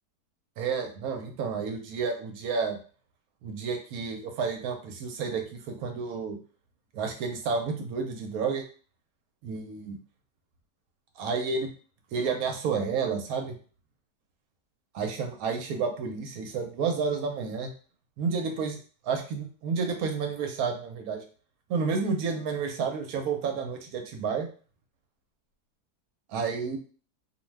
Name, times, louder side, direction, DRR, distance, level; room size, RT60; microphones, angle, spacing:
voice 1, 0.6-2.8 3.4-6.4 6.9-8.6 9.4-10.0 11.2-11.7 12.1-13.5 14.9-17.7 18.2-18.8 19.0-21.2 21.7-24.5 26.3-26.8, right 5 dB, 70° right, 4 dB, 0.9 m, -30 dB
2.6 x 2.1 x 3.2 m, 0.40 s
omnidirectional pair, 1.7 m